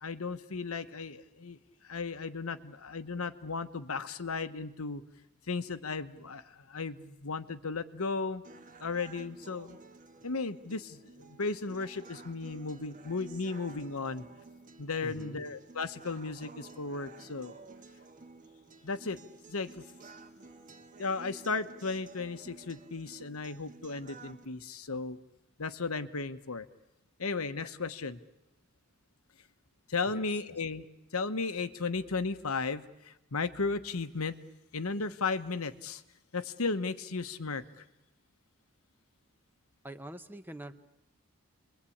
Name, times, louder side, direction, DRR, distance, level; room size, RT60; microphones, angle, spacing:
voice 1, 0.0-1.6 1.8-5.0 5.5-8.4 8.8-9.8 10.2-14.2 14.8-17.5 18.8-19.2 19.5-19.8 21.0-25.2 25.6-26.7 27.2-28.2 29.9-30.9 31.1-34.3 34.7-36.0 36.3-37.8, left 4 dB, 85° left, 10 dB, 1.1 m, -35 dB
sound 1, 8.4-24.5, right 3 dB, 35° right, 1.6 m, -52 dB
voice 2, 15.0-15.5 30.1-30.6 39.8-40.7, right 1 dB, 10° right, 9 dB, 0.9 m, -45 dB
29.5 x 22.0 x 8.6 m, 0.96 s
head